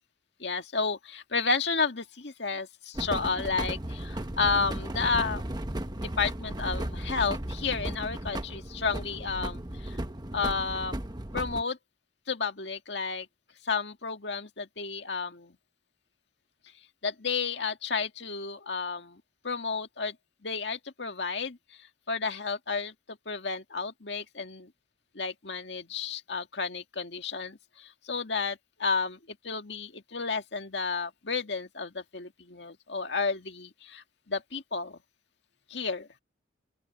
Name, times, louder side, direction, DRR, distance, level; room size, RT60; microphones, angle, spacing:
voice 1, 0.4-5.4 6.0-10.0 10.3-10.9 11.3-11.8 12.3-13.3 13.6-15.5 17.0-20.2 20.4-21.6 22.1-24.7 25.2-29.2 29.4-35.0 35.7-36.1, left 4 dB, 65° left, 2.1 m, -32 dB
sound 1, 2.9-11.6, right 1 dB, 20° right, 1.1 m, -35 dB
open air
head